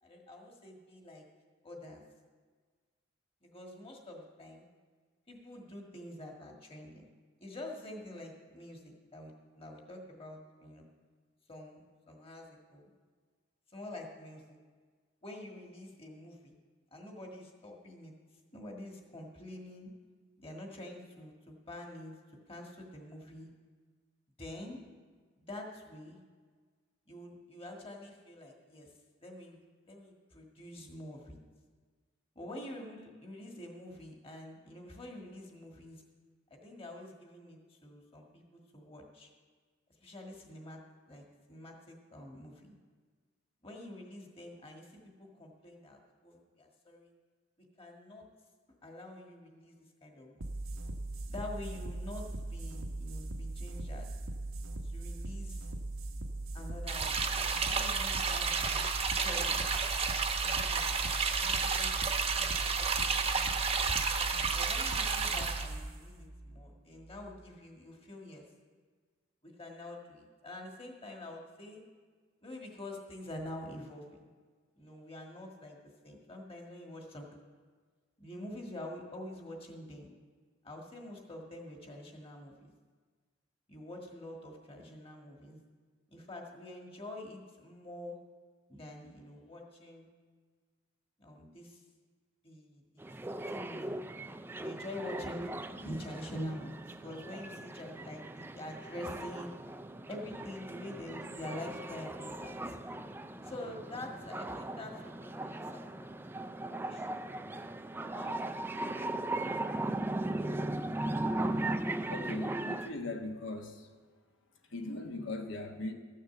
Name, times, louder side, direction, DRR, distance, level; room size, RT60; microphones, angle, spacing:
voice 1, 0.0-1.2 1.6-2.0 3.4-4.7 5.3-7.0 7.4-10.8 11.5-12.9 13.7-14.6 15.2-16.5 16.9-18.1 18.5-19.9 20.4-22.1 22.5-23.5 24.4-24.8 25.4-26.2 27.1-28.9 29.2-29.6 29.8-31.4 32.3-36.0 36.5-39.3 40.0-40.8 41.1-42.7 43.6-47.1 47.8-48.3 48.8-50.5 51.3-54.1 54.8-55.7 56.5-58.8 59.2-59.8 60.5-61.0 61.4-62.2 62.8-63.6 64.5-68.4 69.4-71.8 72.4-74.2 74.8-77.3 78.2-80.1 80.6-82.7 83.7-85.6 86.1-88.2 88.7-90.1 91.2-91.8 92.4-93.9 94.6-99.8 100.1-102.8 103.4-106.1 106.6-107.4 107.9-110.8, left 1 dB, 30° left, 1 dB, 1.6 m, -46 dB
sound 1, 50.4-67.4, right 2 dB, 90° right, 1.0 m, -40 dB
sound 2, 56.9-65.7, right 5 dB, 30° right, 0.8 m, -31 dB
sound 3, 93.0-112.9, right 2 dB, 10° right, 0.3 m, -38 dB
voice 2, 112.1-113.9 114.7-115.9, left 2 dB, 70° left, 5 dB, 1.2 m, -39 dB
13.5 x 6.6 x 7.0 m, 1.5 s
head